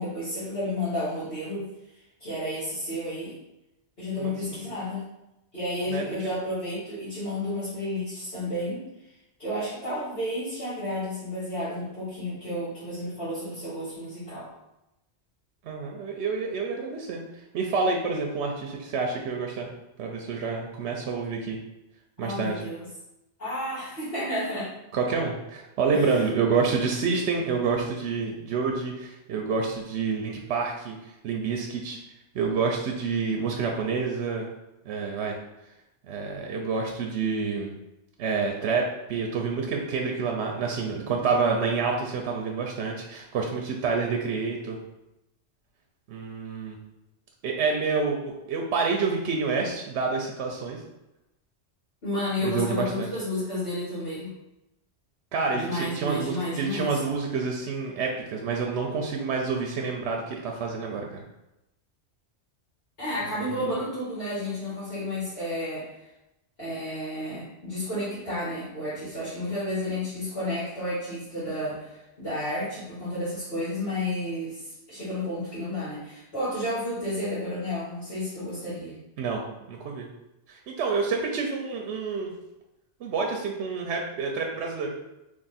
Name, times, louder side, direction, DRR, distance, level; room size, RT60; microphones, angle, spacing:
voice 1, 0.0-1.7 1.9-3.3 4.0-5.0 5.5-8.8 9.4-14.5 22.2-22.8 23.4-24.7 25.9-26.2 52.0-54.3 55.5-57.0 63.0-65.9 66.6-79.0, left 1 dB, 55° left, -12 dB, 1.8 m, -31 dB
voice 2, 4.2-4.6 5.9-6.3 15.6-17.2 17.5-19.7 20.0-21.6 22.2-22.6 24.9-32.0 32.3-34.5 34.9-35.4 36.1-37.7 38.2-44.8 46.1-46.8 47.4-50.8 52.4-53.1 55.3-61.2 63.3-63.7 79.2-80.1 80.5-82.3 83.0-84.9, right 4 dB, 75° right, 1 dB, 0.8 m, -28 dB
3.5 x 2.6 x 4.0 m, 0.93 s
omnidirectional pair, 1.2 m